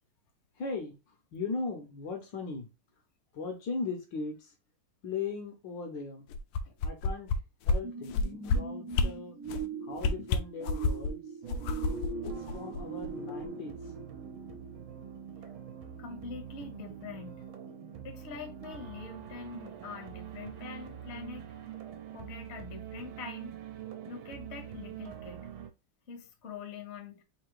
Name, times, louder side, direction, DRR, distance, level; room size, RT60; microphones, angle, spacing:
voice 1, 0.6-2.7 3.3-4.5 5.0-6.3 6.8-7.3 7.7-9.4 9.8-11.2 12.2-13.9, left 4 dB, 65° left, 1.4 m, -38 dB
sound 1, 6.3-7.4 7.7-7.8 8.1-8.6 8.9-9.1 9.5-9.7 10.0-11.1 11.5-13.1 13.4-13.5, left 4 dB, 85° left, 1.5 m, -28 dB
sound 2, 7.8-15.2 15.7-15.8, right 4 dB, 55° right, 1.0 m, -41 dB
sound 3, 11.4-25.7, right 9 dB, 75° right, 1.5 m, -45 dB
voice 2, 16.0-17.5 18.0-21.4 22.1-23.5 24.1-25.4 26.1-27.2, left 5 dB, 45° left, 1.0 m, -44 dB
3.8 x 2.7 x 4.7 m
omnidirectional pair, 2.3 m